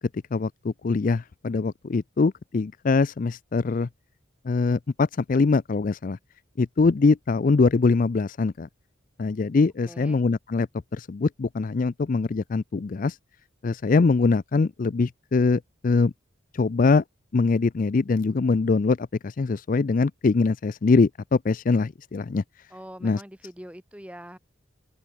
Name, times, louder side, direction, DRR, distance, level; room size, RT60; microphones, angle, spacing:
voice 1, 0.3-3.9 4.4-6.2 6.6-8.7 9.2-13.2 13.6-16.1 16.5-17.0 17.3-22.4 23.0-23.2, left 4 dB, 45° left, 0.4 m, -23 dB
voice 2, 9.8-10.2 22.7-24.4, equal, 5° right, 3.5 m, -43 dB
open air
head